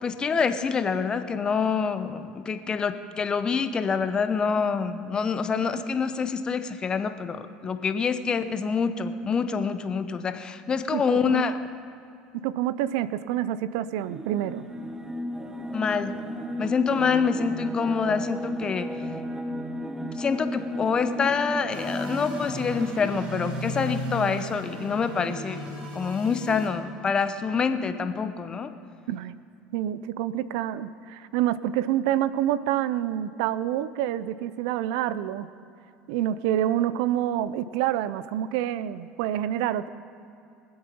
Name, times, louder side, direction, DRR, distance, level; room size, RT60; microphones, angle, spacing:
voice 1, 0.0-11.6 15.7-16.2 16.6-18.9 20.2-28.7, left 5 dB, 30° left, 10 dB, 0.9 m, -26 dB
voice 2, 10.9-11.5 12.3-14.6 29.1-29.4 29.7-35.5 36.1-39.9, right 12 dB, 80° right, 16 dB, 0.5 m, -27 dB
sound 1, 14.0-23.2, equal, 15° right, 1.0 m, -34 dB
sound 2, 21.7-26.7, right 1 dB, 45° right, 3.2 m, -35 dB
23.5 x 8.0 x 5.2 m, 2.5 s
supercardioid pair, 100°, 3 cm